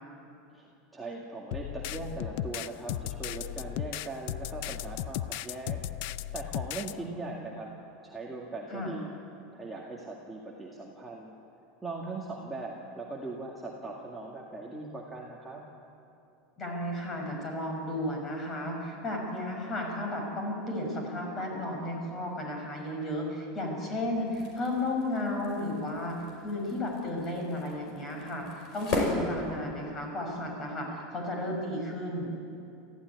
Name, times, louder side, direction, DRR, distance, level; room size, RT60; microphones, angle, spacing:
voice 1, 0.5-7.7 8.0-9.2 9.5-11.3 11.8-15.6, right 3 dB, 5° right, -4 dB, 2.0 m, -40 dB
sound 1, 1.5-6.9, left 13 dB, 55° left, 0.5 m, -36 dB
voice 2, 16.6-32.4, left 1 dB, 20° left, 1 dB, 5.8 m, -33 dB
sound 2, 24.1-30.1, left 2 dB, 40° left, 5.4 m, -37 dB
29.0 x 15.0 x 9.6 m, 2.7 s
supercardioid pair, 170°, 0 cm